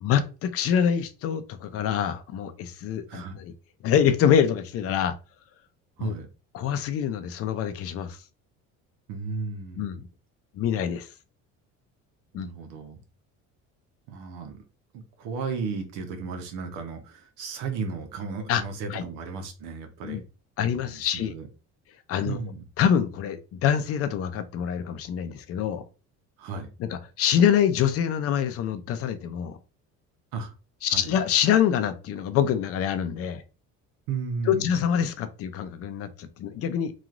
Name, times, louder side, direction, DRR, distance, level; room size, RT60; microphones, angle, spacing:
voice 1, 0.0-3.5 3.8-5.1 6.0-6.1 6.5-8.2 9.8-10.1 10.6-11.1 12.3-12.5 18.5-18.6 18.9-19.0 20.0-20.2 20.6-21.3 22.1-22.4 22.8-25.8 26.8-29.6 30.8-33.4 34.5-36.9, left 8 dB, 50° left, 0.5 m, -25 dB
voice 2, 9.1-10.0 12.3-13.0 14.1-14.6 14.9-20.2 20.6-21.5 22.2-22.7 26.4-26.7 30.3-30.5 30.9-31.2 34.1-35.0, right 4 dB, 90° right, 0.8 m, -34 dB
3.0 x 2.4 x 2.4 m
cardioid pair, 135°, 30 cm